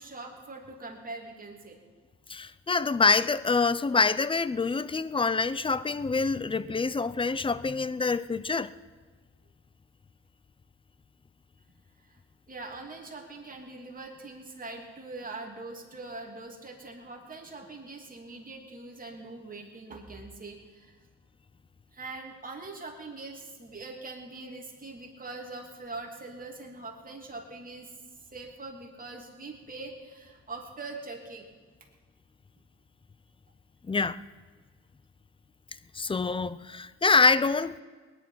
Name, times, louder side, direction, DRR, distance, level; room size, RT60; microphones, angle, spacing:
voice 1, 0.0-1.8 12.0-12.2 12.5-21.0 21.9-27.9 28.3-31.5, right 3 dB, 30° right, 3.0 m, -42 dB
voice 2, 2.3-8.7 33.9-34.2 35.9-37.8, left 4 dB, 15° left, 0.5 m, -26 dB
19.5 x 11.0 x 5.8 m
cardioid pair, 90°, 30 cm